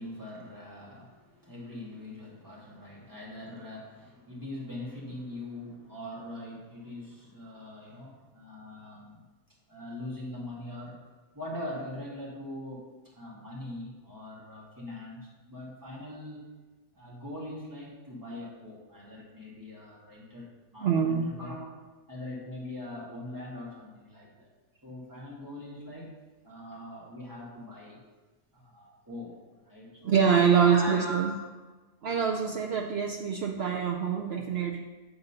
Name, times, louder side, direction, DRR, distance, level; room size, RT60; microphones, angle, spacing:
voice 1, 0.0-9.2 9.7-11.0 11.3-16.4 16.9-21.8 22.1-24.5 24.8-26.2 26.4-28.0 28.5-31.4, left 1 dB, 15° right, -5 dB, 1.8 m, -42 dB
voice 2, 20.8-21.3 30.0-31.3 32.0-34.8, right 7 dB, 80° right, 2 dB, 0.5 m, -25 dB
8.1 x 3.9 x 5.5 m, 1.2 s
omnidirectional pair, 1.6 m